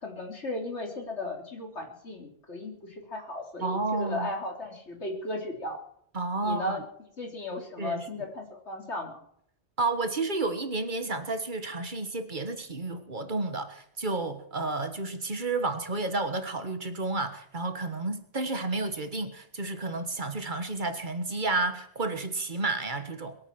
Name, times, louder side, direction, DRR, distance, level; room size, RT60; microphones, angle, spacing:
voice 1, 0.0-5.8 6.4-6.8 7.2-9.2, left 1 dB, 80° left, 1 dB, 3.8 m, -36 dB
voice 2, 3.6-4.3 6.1-6.8 7.8-8.3 9.8-23.4, right 3 dB, 45° right, 9 dB, 1.7 m, -31 dB
22.5 x 8.7 x 6.2 m, 0.68 s
omnidirectional pair, 1.2 m